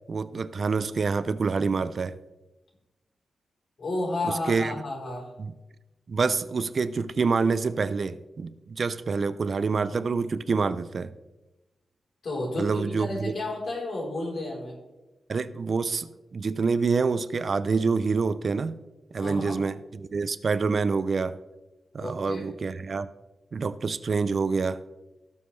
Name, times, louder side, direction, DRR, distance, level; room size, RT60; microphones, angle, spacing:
voice 1, 0.1-2.1 4.2-4.7 5.4-5.5 6.1-11.1 12.6-13.3 15.3-18.7 19.1-21.4 21.9-23.1 23.5-24.8, right 4 dB, 50° right, 14 dB, 0.4 m, -27 dB
voice 2, 3.8-5.3 12.2-14.8 19.2-19.6 22.0-22.4, left 2 dB, 65° left, -2 dB, 3.7 m, -32 dB
17.0 x 7.1 x 3.2 m, 1.0 s
wide cardioid pair, 140°, 0 cm